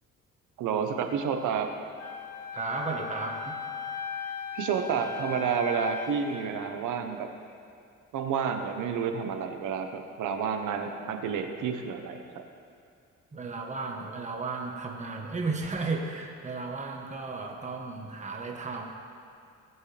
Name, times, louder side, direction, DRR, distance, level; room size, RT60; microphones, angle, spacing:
voice 1, 0.6-1.7 4.5-7.3 8.1-12.2, right 7 dB, 85° right, 5 dB, 1.1 m, -30 dB
Wind instrument woodwind instrument, 2.0-6.4, left 7 dB, 60° left, 1.6 m, -37 dB
voice 2, 2.5-3.6 13.3-18.9, right 3 dB, 25° right, 1 dB, 1.3 m, -34 dB
18.0 x 7.5 x 3.4 m, 2.3 s
cardioid pair, 90°, 30 cm